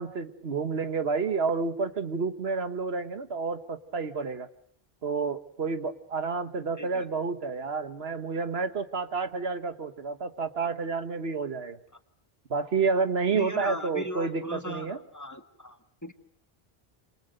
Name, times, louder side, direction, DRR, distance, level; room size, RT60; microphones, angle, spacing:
voice 1, 0.0-4.5 5.0-11.8 12.5-15.0, right 4 dB, 80° right, 10 dB, 1.6 m, -30 dB
voice 2, 13.3-16.1, equal, 15° left, 7 dB, 1.7 m, -37 dB
27.5 x 27.0 x 6.6 m, 0.63 s
omnidirectional pair, 1.0 m